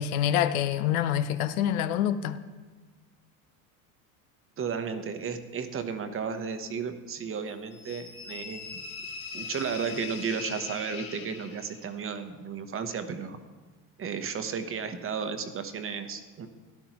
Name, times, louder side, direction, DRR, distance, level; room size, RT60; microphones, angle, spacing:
voice 1, 0.0-2.4, left 10 dB, 90° left, 0.7 m, -26 dB
voice 2, 4.6-8.8 9.3-13.4 14.0-16.5, right 6 dB, 30° right, 1.0 m, -34 dB
sound 1, 7.7-11.9, left 5 dB, 50° left, 2.2 m, -41 dB
13.0 x 10.5 x 3.0 m
supercardioid pair, 95°, 42 cm